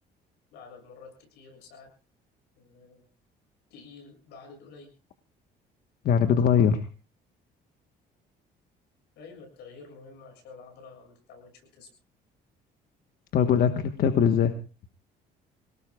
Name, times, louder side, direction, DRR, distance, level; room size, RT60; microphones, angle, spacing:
voice 1, 0.5-1.9 2.6-3.0 3.7-4.9 9.2-11.9, left 4 dB, 85° left, 4 dB, 7.2 m, -49 dB
voice 2, 6.0-6.9 13.3-14.5, left 7 dB, 60° left, 7 dB, 1.3 m, -21 dB
26.5 x 18.5 x 2.4 m, 0.33 s
cardioid pair, 110°, 17 cm